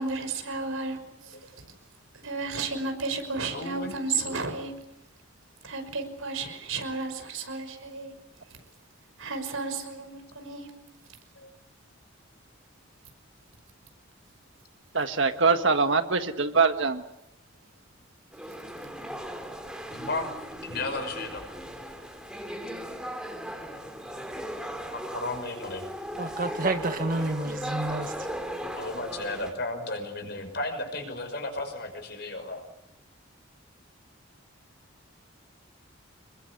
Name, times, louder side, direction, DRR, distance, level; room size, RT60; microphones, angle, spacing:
voice 1, 0.0-1.0 2.1-4.7 5.6-8.1 9.2-10.7, right 3 dB, 85° right, 5.8 m, -32 dB
voice 2, 3.5-4.4 11.4-11.5 15.6-15.7 19.9-20.3 20.6-21.4 24.9-25.9 28.8-32.6, left 2 dB, 50° left, 5.8 m, -34 dB
voice 3, 14.9-17.0, right 4 dB, 65° right, 1.6 m, -23 dB
sound 1, 18.3-29.5, equal, 5° right, 2.9 m, -37 dB
voice 4, 26.2-28.3, right 2 dB, 40° right, 1.8 m, -29 dB
28.0 x 22.0 x 8.5 m
head